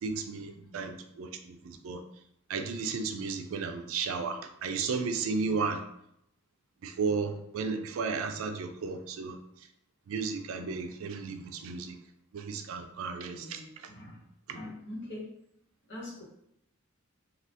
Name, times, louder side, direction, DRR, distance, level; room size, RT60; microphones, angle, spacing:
voice 1, 0.0-2.0 2.5-5.8 6.8-9.4 10.1-12.0 12.3-13.6 14.5-14.6, right 4 dB, 75° right, 7 dB, 0.3 m, -34 dB
voice 2, 13.3-14.2 14.5-15.3 15.9-16.2, left 1 dB, 55° left, -5 dB, 1.2 m, -43 dB
2.7 x 2.3 x 3.3 m, 0.76 s
head